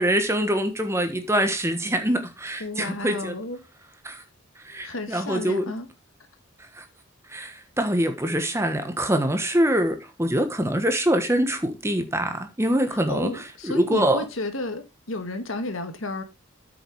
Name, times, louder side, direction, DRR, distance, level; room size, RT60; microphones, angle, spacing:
voice 1, 0.0-3.3 4.0-4.2 4.6-5.7 6.7-6.8 7.3-13.3 13.6-14.2, right 1 dB, 10° right, 1.3 m, -24 dB
voice 2, 2.6-3.6 4.8-5.9 13.1-16.2, left 2 dB, 70° left, 1.8 m, -32 dB
8.8 x 7.0 x 4.7 m
head